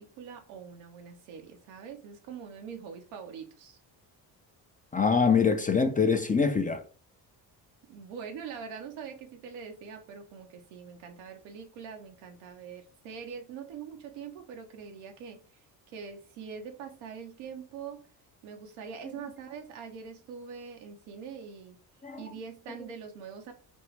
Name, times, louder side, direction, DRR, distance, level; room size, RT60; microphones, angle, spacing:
voice 1, 0.0-3.8 7.9-18.0 18.4-21.8 22.2-23.5, right 6 dB, 85° right, 0.9 m, -43 dB
voice 2, 4.9-6.8 22.0-22.2, left 5 dB, 20° left, 0.4 m, -24 dB
4.4 x 2.4 x 3.2 m
supercardioid pair, 65°, 48 cm